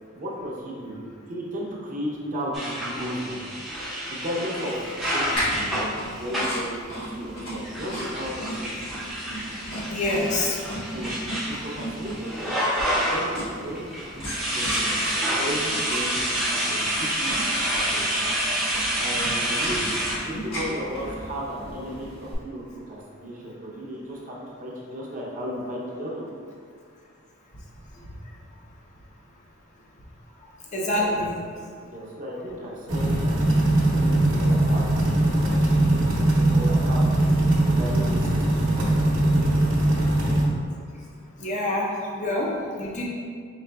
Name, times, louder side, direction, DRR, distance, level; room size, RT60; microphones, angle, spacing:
voice 1, 0.1-1.0 1.3-3.6 4.1-4.9 5.1-8.7 10.9-11.1 11.5-12.6 12.9-18.1 18.9-19.8 20.3-26.2 31.0-31.1 31.8-34.8 35.2-37.0 37.6-38.8 42.6-42.7, equal, 40° right, -3 dB, 0.7 m, -35 dB
sound 1, 2.5-6.7 7.6-13.4 13.7-20.3, equal, ahead, 0.6 m, -28 dB
sound 2, 5.3-22.3, equal, 85° left, 1.3 m, -35 dB
voice 2, 9.9-10.6 30.7-31.3 41.4-42.5 42.8-43.0, left 1 dB, 35° left, -3 dB, 0.6 m, -26 dB
sound 3, 32.9-40.4, right 1 dB, 70° right, 0.9 m, -21 dB
5.0 x 3.5 x 2.3 m, 2.1 s
head